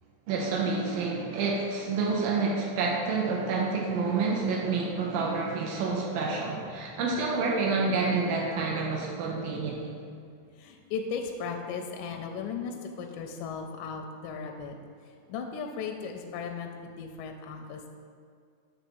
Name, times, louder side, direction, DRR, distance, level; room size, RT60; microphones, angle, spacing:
voice 1, 0.3-9.9, right 4 dB, 80° right, -2 dB, 2.4 m, -28 dB
voice 2, 10.5-14.8 15.0-17.9, left 5 dB, 80° left, 4 dB, 1.9 m, -37 dB
7.3 x 3.2 x 6.1 m, 2.2 s
omnidirectional pair, 4.0 m